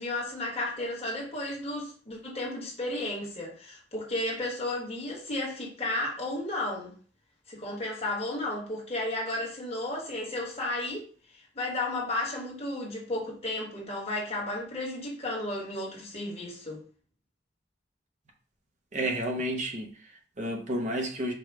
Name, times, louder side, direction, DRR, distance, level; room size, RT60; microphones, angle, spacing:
voice 1, 0.0-6.9 7.5-11.0 11.3-16.8, left 1 dB, 30° left, 1.4 m, -33 dB
voice 2, 18.9-21.3, right 1 dB, 40° right, 0.7 m, -31 dB
4.8 x 2.3 x 4.6 m
head